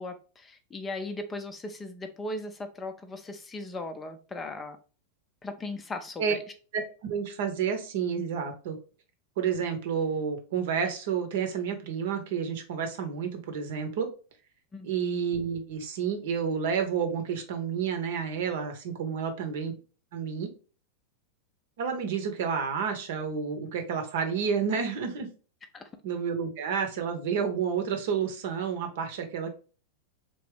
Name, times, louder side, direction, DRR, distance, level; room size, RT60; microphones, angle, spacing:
voice 1, 0.0-4.8 5.4-6.4 14.7-14.9 25.7-25.9, left 2 dB, 20° left, 7 dB, 0.5 m, -38 dB
voice 2, 6.7-8.8 9.4-14.1 14.8-19.7 20.1-20.5 21.8-25.3 26.0-29.5, right 6 dB, 55° right, 6 dB, 0.8 m, -30 dB
3.4 x 2.9 x 3.3 m, 0.36 s
figure-of-eight pair, 90°, 0 cm